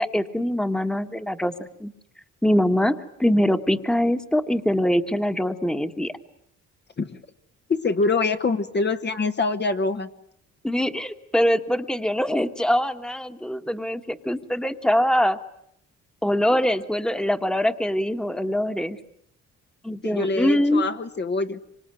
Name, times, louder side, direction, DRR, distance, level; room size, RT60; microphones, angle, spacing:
voice 1, 0.0-1.9 2.4-6.1 10.6-15.4 16.2-19.0 19.8-20.8, equal, ahead, 8 dB, 1.6 m, -23 dB
voice 2, 7.7-10.1 20.0-21.6, left 3 dB, 35° left, 6 dB, 1.3 m, -24 dB
25.5 x 25.5 x 9.2 m, 0.75 s
cardioid pair, 90°, 30 cm